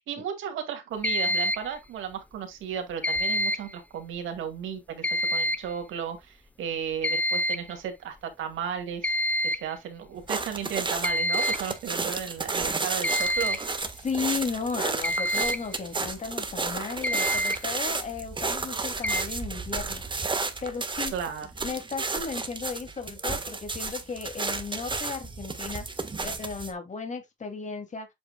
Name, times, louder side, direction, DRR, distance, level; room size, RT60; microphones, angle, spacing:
voice 1, 0.1-9.2 9.4-13.6 21.1-21.5, right 8 dB, 80° right, 2.3 m, -34 dB
sound 1, 1.0-1.7 3.0-3.7 5.0-5.7 7.0-7.7 9.0-9.7 11.0-11.7 13.0-13.7 15.0-15.6 16.7-16.8 17.0-17.6 19.0-19.2, equal, 5° left, 0.8 m, -27 dB
sound 2, 10.3-26.7, right 3 dB, 25° right, 1.4 m, -32 dB
voice 2, 14.0-20.0 20.6-21.1 21.6-25.8 26.2-28.1, left 5 dB, 35° left, 2.5 m, -34 dB
8.0 x 6.0 x 2.3 m
cardioid pair, 90°, 20 cm